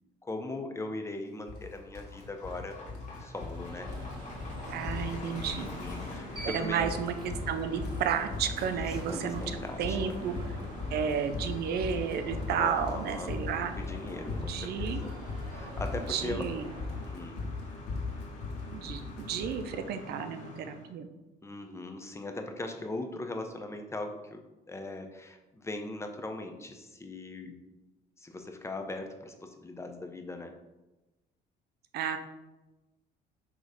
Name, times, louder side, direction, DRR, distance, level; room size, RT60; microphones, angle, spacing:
voice 1, 0.2-2.8 3.2-3.9 5.4-6.9 8.7-10.2 12.6-15.1 15.5-16.5 17.1-17.5 21.4-24.4 24.7-27.5 28.2-30.5, left 2 dB, 15° left, 5 dB, 0.8 m, -40 dB
sound 1, 1.5-1.6 1.9-2.6 2.9-3.6 3.9-4.1 4.4-4.5 4.8-5.6 5.8-6.5 6.8-19.6, left 4 dB, 75° left, 1.6 m, -37 dB
sound 2, 1.5-20.9, left 2 dB, 45° left, 1.8 m, -46 dB
Alarm, 3.4-17.4, right 1 dB, 30° right, 2.2 m, -45 dB
voice 2, 4.7-5.7 6.4-7.1 7.5-10.3 10.9-13.7 14.3-15.0 16.1-16.7 18.7-21.1 31.9-32.2, right 7 dB, 70° right, 8 dB, 0.6 m, -32 dB
6.6 x 3.1 x 5.1 m, 1.0 s
cardioid pair, 110°, 17 cm